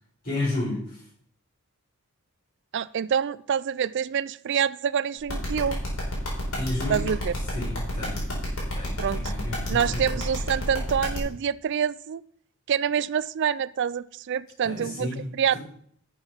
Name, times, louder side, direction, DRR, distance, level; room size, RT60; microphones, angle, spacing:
voice 1, 0.2-1.0 6.6-7.1 7.5-8.3 8.7-10.0 14.6-15.2, left 2 dB, 40° left, -11 dB, 4.9 m, -31 dB
voice 2, 2.7-5.8 6.9-7.3 9.0-9.2 9.7-12.2 12.7-15.1 15.3-15.6, right 8 dB, 55° right, 18 dB, 0.3 m, -26 dB
sound 1, 5.3-11.2, left 2 dB, 70° left, 4.7 m, -31 dB
11.5 x 7.0 x 5.7 m, 0.64 s
head